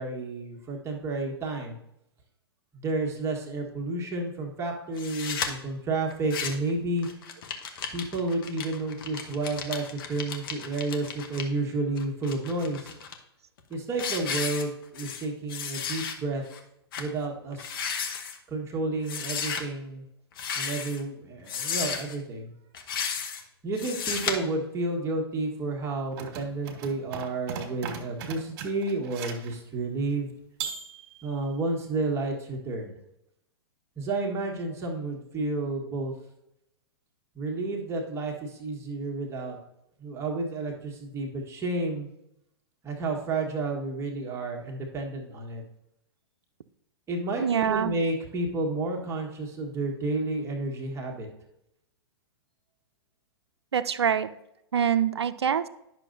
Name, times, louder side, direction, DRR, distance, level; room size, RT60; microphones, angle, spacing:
voice 1, 0.0-1.8 2.7-7.1 7.9-12.9 13.7-16.4 17.0-17.8 18.5-20.0 20.5-22.5 23.6-30.3 31.2-32.9 34.0-36.1 37.3-39.6 40.0-42.1 42.8-45.6 47.1-51.3, right 2 dB, 20° right, 0 dB, 1.5 m, -31 dB
sound 1, 5.0-5.5 6.1-6.7 7.0-11.4 12.0-13.1 13.6-13.7 14.0-15.2 15.5-16.1 16.5-16.6 16.9-17.1 17.5-18.4 19.1-19.6 20.3-21.0 21.5-22.2 22.7-23.4 23.8-24.3, left 6 dB, 55° left, 1.2 m, -33 dB
sound 2, 26.1-29.5 30.6-31.4, right 6 dB, 45° right, 1.7 m, -38 dB
voice 2, 47.4-48.0 53.7-54.3 54.7-55.7, right 8 dB, 75° right, 12 dB, 0.5 m, -25 dB
10.5 x 6.3 x 2.7 m, 0.82 s
figure-of-eight pair, 105°, 14 cm